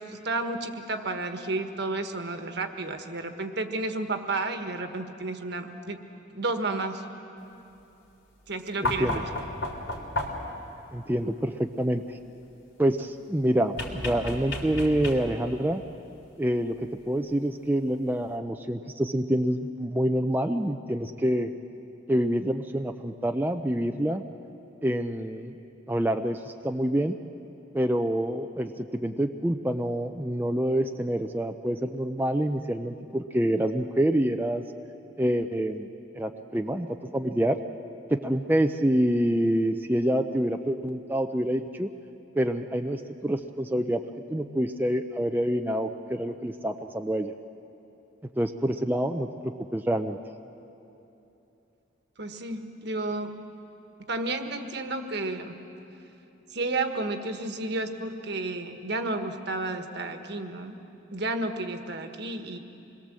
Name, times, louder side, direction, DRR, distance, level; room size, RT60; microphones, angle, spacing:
voice 1, 0.0-6.0 6.3-7.0 8.5-9.3 52.2-53.3 54.1-55.6 56.5-60.8 61.1-62.6, right 2 dB, 60° right, 6 dB, 1.4 m, -32 dB
sound 1, 8.8-10.6 13.8-15.5 17.1-17.2, left 1 dB, 80° left, 3.5 m, -32 dB
voice 2, 8.8-9.2 10.9-12.2 12.8-15.8 16.4-21.5 22.1-24.2 24.8-25.5 25.9-27.1 27.7-34.6 35.2-35.9 36.1-36.9 37.1-37.6 38.1-41.9 42.4-44.0 44.3-47.3 48.4-50.2, right 1 dB, 10° right, 5 dB, 0.5 m, -27 dB
26.0 x 21.0 x 7.5 m, 2.9 s
head